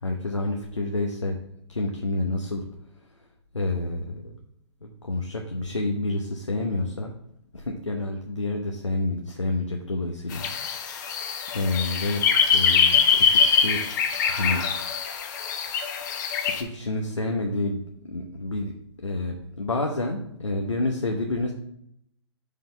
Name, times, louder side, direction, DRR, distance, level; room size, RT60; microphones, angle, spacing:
voice 1, 0.0-1.4 1.7-2.6 3.5-4.3 4.8-7.1 7.5-10.5 11.1-11.2 11.5-12.2 12.5-13.8 14.3-14.6 16.6-18.7 19.0-21.5, left 2 dB, 90° left, 2 dB, 1.1 m, -28 dB
sound 1, 10.3-16.6, left 6 dB, 40° left, 1.0 m, -23 dB
6.0 x 5.3 x 4.5 m, 0.74 s
figure-of-eight pair, 130°, 15 cm